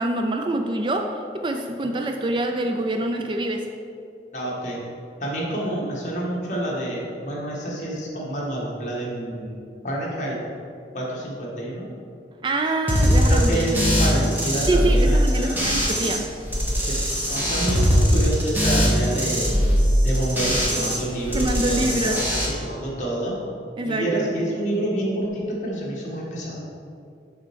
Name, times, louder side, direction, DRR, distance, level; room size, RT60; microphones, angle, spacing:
voice 1, 0.0-3.6 12.4-13.9 14.7-16.3 21.3-22.2 23.8-24.1, right 2 dB, 25° right, 4 dB, 0.3 m, -25 dB
voice 2, 4.3-4.8 5.2-9.6 9.8-10.4 10.9-11.9 13.2-15.6 16.9-19.7 20.0-23.4 23.8-26.6, right 1 dB, 45° left, -5 dB, 1.7 m, -28 dB
sound 1, 12.9-16.2 16.5-21.0 21.3-22.5, equal, 10° right, 1.2 m, -21 dB
6.7 x 4.4 x 6.2 m, 2.5 s
head